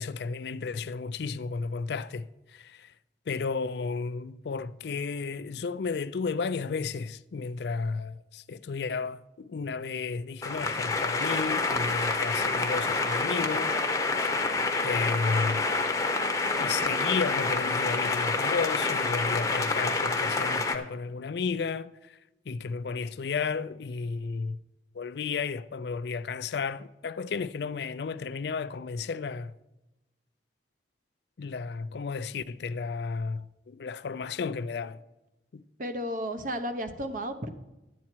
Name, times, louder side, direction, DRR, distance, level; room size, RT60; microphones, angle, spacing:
voice 1, 0.0-2.9 3.3-13.8 14.8-15.7 16.5-22.2 22.5-24.6 24.9-29.5 31.4-35.0 35.5-35.6, left 5 dB, 65° left, 0.4 m, -33 dB
sound 1, 10.4-20.8, left 3 dB, 15° left, 0.8 m, -28 dB
voice 2, 35.8-37.5, equal, 45° right, 0.9 m, -33 dB
11.5 x 8.5 x 4.5 m
head